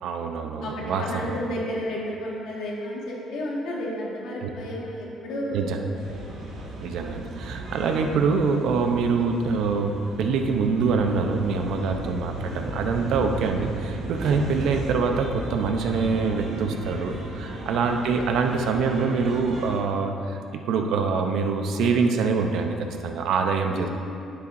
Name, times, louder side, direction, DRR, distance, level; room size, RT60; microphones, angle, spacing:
voice 1, 0.0-1.3 4.4-4.5 5.5-5.8 6.8-23.9, right 4 dB, 70° right, 4 dB, 0.7 m, -25 dB
voice 2, 0.6-6.4 11.7-12.1 12.9-13.1 17.4-17.8 23.6-23.9, equal, 85° left, -4 dB, 1.7 m, -33 dB
sound 1, 5.9-19.8, right 2 dB, 85° right, 1.5 m, -35 dB
9.7 x 8.4 x 2.6 m, 2.7 s
cardioid pair, 150°, 0 cm